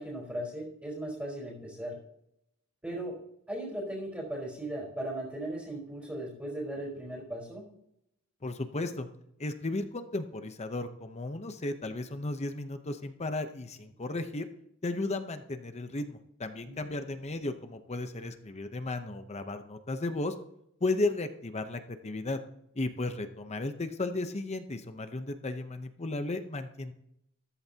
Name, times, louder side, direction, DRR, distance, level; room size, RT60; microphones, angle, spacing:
voice 1, 0.0-2.0 2.8-3.2 3.5-7.6 16.6-17.0, right 1 dB, 10° right, -4 dB, 4.2 m, -37 dB
voice 2, 8.4-9.1 9.4-14.5 14.8-20.3 20.8-22.4 22.7-26.9, left 2 dB, 30° left, 8 dB, 0.8 m, -34 dB
14.5 x 14.5 x 2.9 m, 0.77 s
head